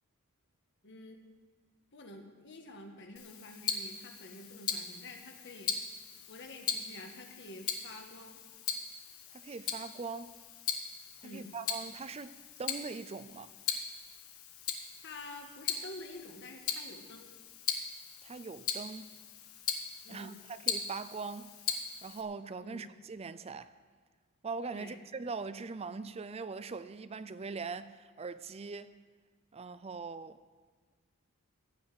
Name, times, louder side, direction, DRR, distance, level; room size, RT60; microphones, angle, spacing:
voice 1, 0.8-1.2 1.9-5.7 6.3-8.4 11.2-11.6 15.0-17.3 20.0-20.4 22.6-22.9 24.7-25.1, left 2 dB, 55° left, 1.6 m, -48 dB
Tick-tock, 3.2-22.2, left 7 dB, 85° left, 1.3 m, -39 dB
voice 2, 9.3-10.4 11.2-13.5 18.2-19.1 20.1-21.5 22.0-23.7 24.4-28.9 29.5-30.4, right 4 dB, 30° right, 0.4 m, -41 dB
15.5 x 5.6 x 9.6 m
head